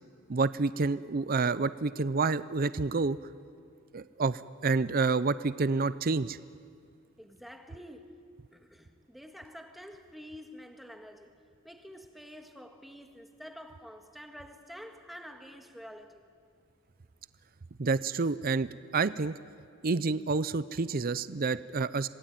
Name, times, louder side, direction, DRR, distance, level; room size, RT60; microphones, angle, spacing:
voice 1, 0.3-3.2 3.9-6.4 17.8-19.4 19.8-22.1, right 4 dB, 45° right, 15 dB, 0.6 m, -28 dB
voice 2, 7.2-8.1 8.5-11.4 11.6-16.3, equal, ahead, 4 dB, 1.8 m, -48 dB
26.5 x 20.0 x 9.1 m, 2.3 s
head